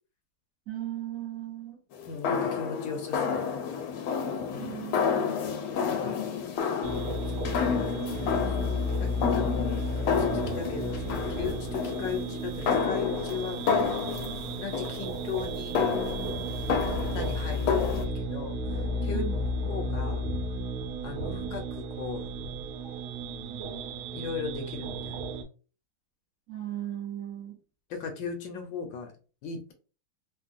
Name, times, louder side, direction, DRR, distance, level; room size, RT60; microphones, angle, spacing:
voice 1, 0.7-1.8 4.6-5.4 14.2-14.5 16.6-17.0 19.1-19.4 26.5-27.6, right 12 dB, 60° right, -3 dB, 0.9 m, -37 dB
sound 1, 1.9-18.1, left 6 dB, 90° left, 1.4 m, -30 dB
voice 2, 2.0-3.5 4.5-4.7 5.9-6.3 7.3-8.6 9.0-9.8 10.2-13.9 14.6-15.8 16.9-19.2 19.7-20.2 21.0-22.3 24.1-25.2 27.9-29.1 29.4-29.7, left 5 dB, 70° left, 4 dB, 1.3 m, -38 dB
sound 2, 6.8-25.4, equal, 80° right, 1.6 m, -33 dB
3.6 x 2.2 x 2.5 m, 0.35 s
omnidirectional pair, 2.2 m